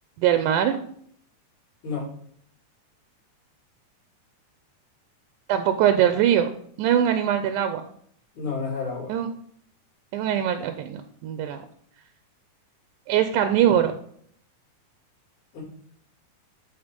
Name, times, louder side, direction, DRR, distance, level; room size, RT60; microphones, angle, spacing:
voice 1, 0.2-0.8 5.5-6.5 6.8-7.8 9.1-9.3 10.1-11.6 13.1-14.0, right 10 dB, 80° right, 8 dB, 2.1 m, -22 dB
voice 2, 8.3-9.1 15.5-15.6, left 4 dB, 65° left, -8 dB, 5.8 m, -30 dB
11.5 x 4.2 x 5.2 m, 0.64 s
omnidirectional pair, 3.7 m